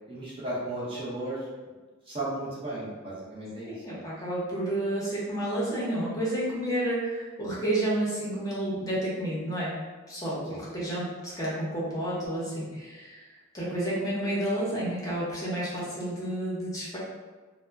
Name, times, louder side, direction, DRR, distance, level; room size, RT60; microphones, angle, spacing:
voice 1, 0.1-1.5 2.1-4.0 10.5-10.6, right 1 dB, 25° right, -8 dB, 0.6 m, -35 dB
voice 2, 3.7-13.3 13.5-17.0, right 1 dB, 15° left, -8 dB, 0.7 m, -30 dB
2.0 x 2.0 x 3.3 m, 1.3 s
head